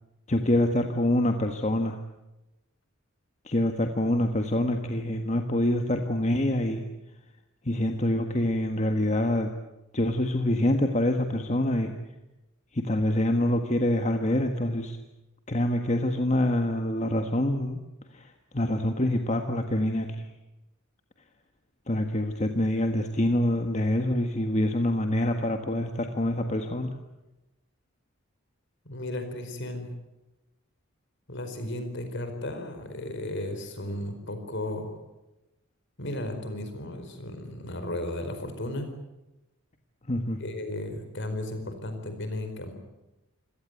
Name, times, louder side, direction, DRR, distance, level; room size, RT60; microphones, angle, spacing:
voice 1, 0.3-2.0 3.4-6.8 7.6-9.5 9.9-11.9 12.7-15.0 15.5-17.8 18.1-20.3 21.9-26.9 40.1-40.4, left 1 dB, 35° left, 5 dB, 1.5 m, -26 dB
voice 2, 28.8-29.9 31.3-34.9 36.0-38.9 40.4-42.7, left 1 dB, 60° left, 7 dB, 4.7 m, -34 dB
27.0 x 17.5 x 9.4 m, 0.99 s
head